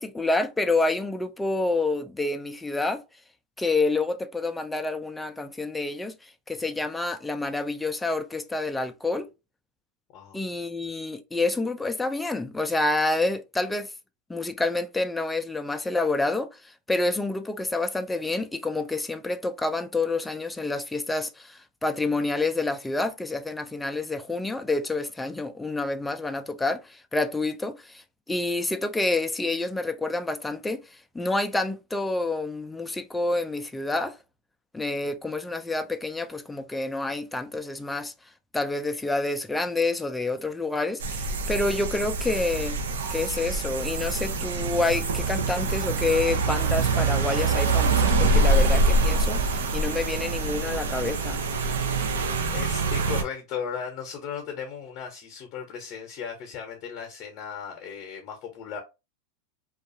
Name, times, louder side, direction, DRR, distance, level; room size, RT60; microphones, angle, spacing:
voice 1, 0.0-3.0 3.6-9.3 10.3-13.9 14.3-34.2 34.7-38.1 38.5-42.8 43.1-51.4, left 2 dB, 10° left, 0.3 m, -28 dB
sound 1, 41.0-53.2, right 3 dB, 85° right, 0.5 m, -25 dB
voice 2, 52.5-58.8, left 7 dB, 45° left, 0.7 m, -36 dB
2.3 x 2.3 x 2.6 m
hypercardioid pair, 110°, 0 cm